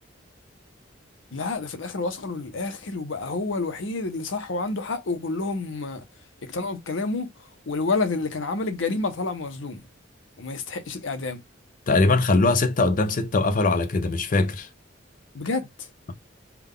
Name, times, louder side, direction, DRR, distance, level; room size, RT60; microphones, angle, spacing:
voice 1, 1.3-6.0 6.4-7.3 7.7-9.8 10.4-11.4 15.3-15.9, left 3 dB, 85° left, 0.7 m, -29 dB
voice 2, 11.9-14.7, left 3 dB, 45° left, 0.5 m, -21 dB
3.5 x 2.2 x 3.6 m
head